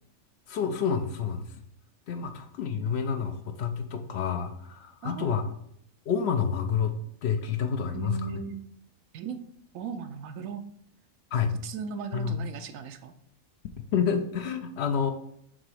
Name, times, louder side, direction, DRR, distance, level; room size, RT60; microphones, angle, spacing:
voice 1, 0.5-1.4 2.1-5.4 6.1-8.3 11.3-11.5 12.1-12.4 13.9-15.1, left 7 dB, 65° left, 6 dB, 0.7 m, -29 dB
voice 2, 5.0-5.4 7.9-8.6 9.1-9.4 9.7-10.6 11.6-13.1, right 7 dB, 70° right, 9 dB, 0.9 m, -37 dB
7.5 x 3.0 x 4.8 m, 0.71 s
omnidirectional pair, 1.6 m